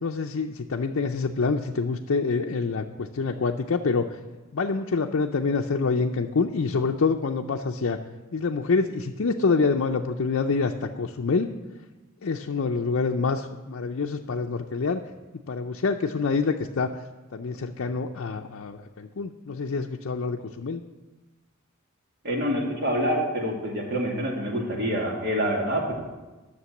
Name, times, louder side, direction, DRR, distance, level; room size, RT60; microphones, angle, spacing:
voice 1, 0.0-4.2 4.5-8.0 8.3-11.5 12.2-15.0 15.5-16.9 17.3-20.8, left 4 dB, 65° left, 2 dB, 0.5 m, -26 dB
voice 2, 22.2-26.0, equal, 50° right, -1 dB, 2.4 m, -26 dB
11.0 x 6.7 x 7.1 m, 1.2 s
head